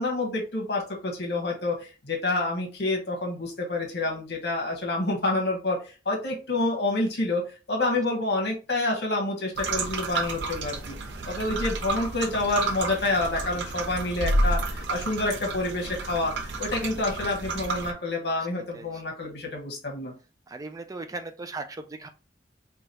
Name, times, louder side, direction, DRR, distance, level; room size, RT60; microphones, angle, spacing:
voice 1, 0.0-10.9 11.3-16.3 16.6-20.1, left 2 dB, 65° left, 0 dB, 1.1 m, -28 dB
sound 1, 9.6-17.9, right 2 dB, 80° right, 0.7 m, -30 dB
voice 2, 20.5-22.1, right 3 dB, 20° right, 8 dB, 0.3 m, -38 dB
4.9 x 2.3 x 2.8 m, 0.33 s
head